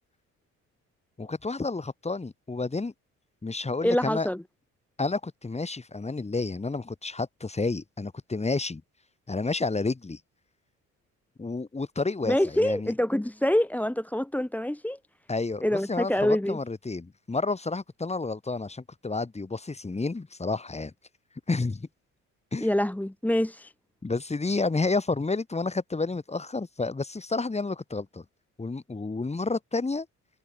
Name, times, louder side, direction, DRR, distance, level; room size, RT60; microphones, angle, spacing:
voice 1, 1.2-2.9 3.4-4.3 5.0-8.8 9.3-10.2 11.4-12.9 15.3-20.9 21.5-21.9 22.5-22.7 24.0-28.2 28.6-30.1, left 3 dB, 20° left, 4.0 m, -30 dB
voice 2, 3.8-4.4 12.2-15.0 15.6-16.6 22.6-23.7, left 1 dB, 5° left, 1.7 m, -26 dB
cardioid pair, 90°, 30 cm